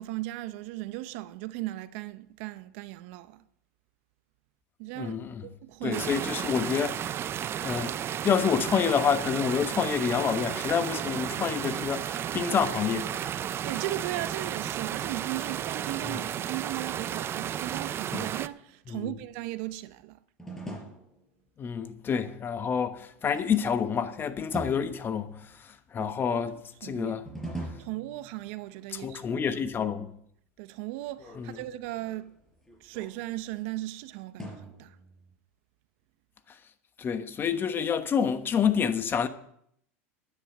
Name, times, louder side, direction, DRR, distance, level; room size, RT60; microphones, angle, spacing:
voice 1, 0.0-3.4 4.8-5.1 5.4-6.3 13.6-20.2 26.0-27.2 27.6-29.6 30.6-32.3 32.8-35.0, right 16 dB, 65° right, 0.7 m, -37 dB
voice 2, 5.0-5.4 5.8-7.0 7.6-7.9 8.2-13.3 16.1-16.2 18.9-19.1 21.6-25.3 25.9-26.5 26.8-27.2 28.9-30.1 31.4-31.6 37.0-39.3, left 7 dB, 30° left, 1.1 m, -28 dB
sound 1, 5.9-18.5, right 10 dB, 35° right, 0.5 m, -33 dB
sound 2, 15.7-17.5 18.1-18.8 20.4-21.3 23.3-24.0 24.5-25.6 27.3-28.7 31.0-33.5 34.4-35.3, right 1 dB, 5° left, 4.8 m, -42 dB
11.0 x 9.9 x 6.0 m
hypercardioid pair, 105°, 7 cm